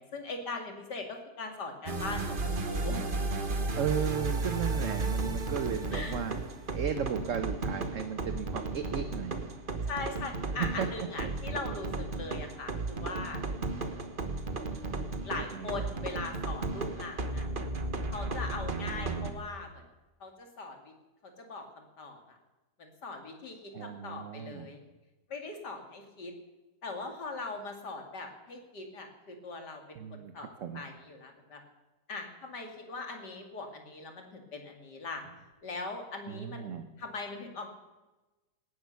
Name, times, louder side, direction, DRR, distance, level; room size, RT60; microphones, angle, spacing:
voice 1, 0.0-3.0 5.9-6.2 9.9-13.4 15.2-17.4 18.1-19.8 20.2-20.9 21.2-22.4 22.8-24.8 25.3-26.3 26.8-31.6 32.1-35.2 35.6-37.7, left 3 dB, 80° left, 4 dB, 3.1 m, -41 dB
sound 1, 1.9-19.3, right 3 dB, 35° right, 1.4 m, -34 dB
voice 2, 3.8-6.4 6.7-9.5 10.5-10.9 11.2-11.3 15.5-15.7 23.7-24.7 30.0-30.8 36.3-36.9, right 7 dB, 55° right, 9 dB, 1.2 m, -35 dB
18.0 x 11.0 x 6.9 m, 1.1 s
omnidirectional pair, 1.8 m